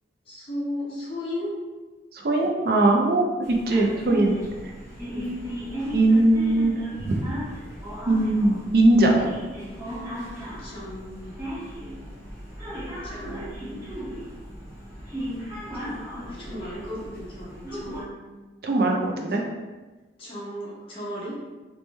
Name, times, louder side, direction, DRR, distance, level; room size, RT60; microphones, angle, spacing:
voice 1, 0.3-1.5 5.1-5.4 10.6-11.3 13.0-13.9 15.8-18.4 20.2-21.4, left 1 dB, 30° left, -7 dB, 0.8 m, -36 dB
voice 2, 2.1-4.4 5.9-6.7 7.1-7.2 8.1-9.3 18.6-19.4, right 2 dB, 55° right, 0 dB, 0.4 m, -20 dB
sound 1, 3.4-18.0, equal, 15° right, 0.6 m, -36 dB
3.0 x 2.1 x 3.1 m, 1.2 s
head